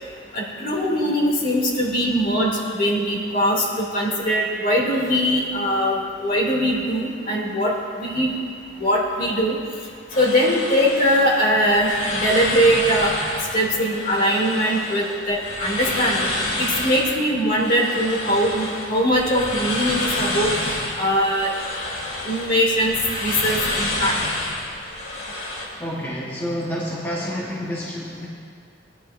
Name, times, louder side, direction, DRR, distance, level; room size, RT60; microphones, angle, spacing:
voice 1, 0.3-8.3 8.8-9.6 10.2-13.1 13.5-16.3 16.6-20.5 21.0-21.5 22.2-23.0 23.2-24.2, equal, 50° left, -3 dB, 2.5 m, -21 dB
sound 1, 10.1-25.7, left 1 dB, 80° left, 3.4 m, -29 dB
voice 2, 25.8-28.3, equal, 15° left, -6 dB, 1.1 m, -29 dB
19.0 x 10.0 x 2.6 m, 2.1 s
head